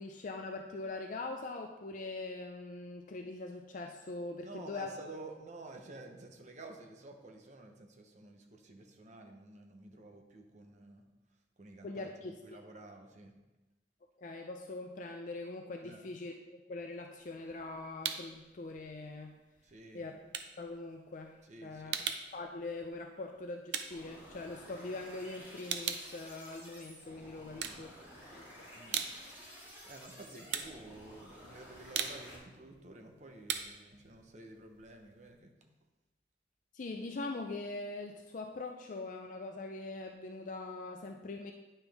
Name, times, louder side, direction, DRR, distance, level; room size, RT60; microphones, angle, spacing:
voice 1, 0.0-4.9 11.8-12.6 14.2-19.3 19.9-20.2 20.6-28.0 28.3-28.5 36.7-41.5, left 3 dB, 45° left, 3 dB, 0.4 m, -42 dB
voice 2, 4.4-11.0 11.6-13.3 15.8-16.1 19.6-20.1 21.4-22.1 27.5-27.8 28.7-29.0 29.5-35.7, right 2 dB, 40° right, 3 dB, 0.9 m, -51 dB
sound 1, 17.2-18.4 18.8-25.0 25.3-27.1 27.5-28.3 28.7-35.4, right 8 dB, 80° right, 0.6 m, -41 dB
sound 2, 23.9-32.4, equal, 10° right, 2.1 m, -53 dB
9.7 x 5.5 x 3.5 m, 1.1 s
head